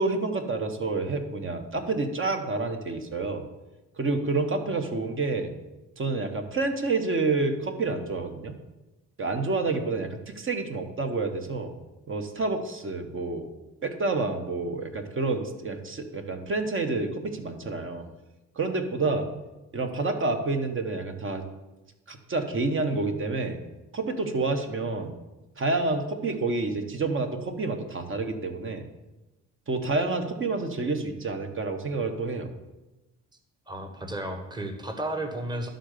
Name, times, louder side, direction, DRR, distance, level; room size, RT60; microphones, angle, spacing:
voice 1, 0.0-3.4 4.0-5.5 6.0-8.6 9.2-11.7 12.1-13.5 13.8-18.0 18.5-19.3 19.7-21.4 22.1-23.6 23.9-25.1 25.6-28.8 29.7-32.5, right 3 dB, 40° right, 6 dB, 1.3 m, -28 dB
voice 2, 33.7-35.7, right 1 dB, 15° right, 6 dB, 1.2 m, -33 dB
11.0 x 3.9 x 6.7 m, 1.0 s
cardioid pair, 90°, 30 cm